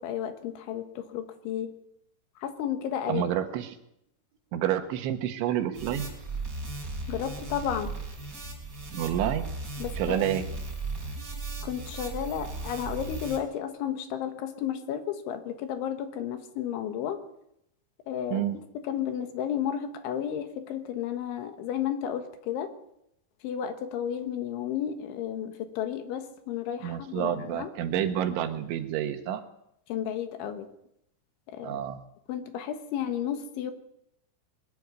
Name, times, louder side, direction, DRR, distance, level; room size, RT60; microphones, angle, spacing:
voice 1, 0.0-1.7 2.4-3.2 7.1-7.9 9.8-10.3 11.6-17.2 18.1-18.5 18.8-22.7 23.4-27.7 29.9-30.7 31.5-31.8 32.3-33.7, left 9 dB, 75° left, 8 dB, 3.7 m, -32 dB
voice 2, 3.1-3.8 4.5-6.1 8.9-9.5 10.0-10.4 18.3-18.6 26.8-29.4 31.6-32.0, right 10 dB, 75° right, 7 dB, 3.5 m, -29 dB
sound 1, 5.7-13.4, right 3 dB, 20° right, 4.1 m, -36 dB
21.0 x 13.0 x 9.7 m, 0.77 s
omnidirectional pair, 5.8 m